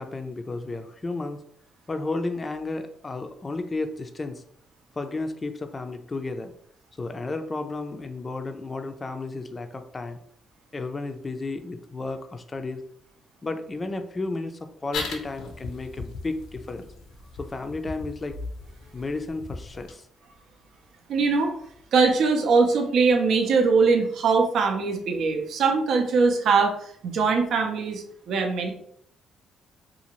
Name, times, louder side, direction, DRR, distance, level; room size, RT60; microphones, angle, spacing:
voice 1, 0.0-1.4 1.9-4.4 5.0-6.5 7.0-10.2 10.7-12.8 13.4-16.9 17.4-18.4 18.9-20.1, left 3 dB, 30° left, 7 dB, 0.4 m, -33 dB
sound 1, 14.9-19.9, left 3 dB, 85° left, 0.6 m, -38 dB
voice 2, 21.1-21.5 21.9-28.7, right 4 dB, 70° right, 3 dB, 0.5 m, -22 dB
2.7 x 2.4 x 2.9 m, 0.65 s
cardioid pair, 90°, 0 cm